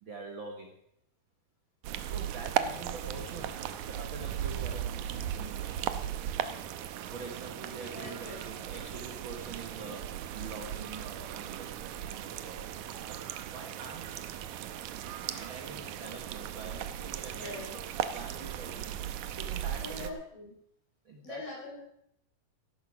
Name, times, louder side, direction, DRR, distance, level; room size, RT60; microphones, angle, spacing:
voice 1, 0.0-0.7 1.8-6.0 7.1-12.6 13.1-14.1 15.2-20.1 21.0-21.4, right 3 dB, 65° right, 2 dB, 1.2 m, -45 dB
sound 1, 1.8-20.1, right 10 dB, 90° right, 1.7 m, -37 dB
voice 2, 7.9-8.4 16.0-16.2 17.4-17.7 19.8-20.5 21.2-21.8, left 3 dB, 70° left, -3 dB, 6.4 m, -42 dB
15.0 x 11.5 x 4.9 m, 0.74 s
omnidirectional pair, 4.3 m